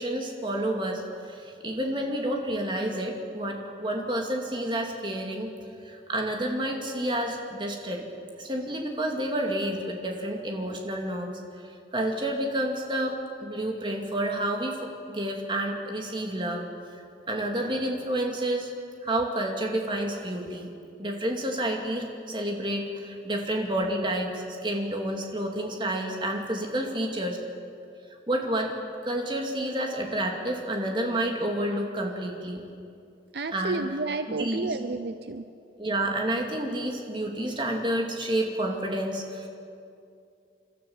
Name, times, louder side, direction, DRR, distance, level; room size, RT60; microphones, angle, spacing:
voice 1, 0.0-5.5 5.8-8.0 8.4-14.8 15.1-16.6 17.3-18.7 19.0-20.7 21.0-27.4 28.3-28.7 29.0-32.6 33.5-33.9 34.3-34.7 35.8-39.5, right 1 dB, 25° right, 1 dB, 2.4 m, -29 dB
voice 2, 33.3-35.4, right 3 dB, 70° right, 9 dB, 0.7 m, -31 dB
29.5 x 12.5 x 7.2 m, 2.5 s
head